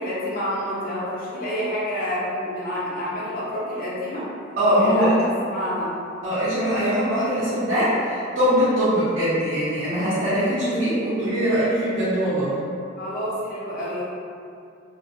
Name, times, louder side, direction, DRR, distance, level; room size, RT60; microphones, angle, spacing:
voice 1, 0.0-4.3 4.8-5.2 5.5-5.9 13.0-14.1, equal, 45° left, -8 dB, 0.6 m, -28 dB
voice 2, 4.6-5.1 6.2-12.5, equal, 60° right, -14 dB, 0.8 m, -22 dB
2.2 x 2.1 x 2.6 m, 2.4 s
head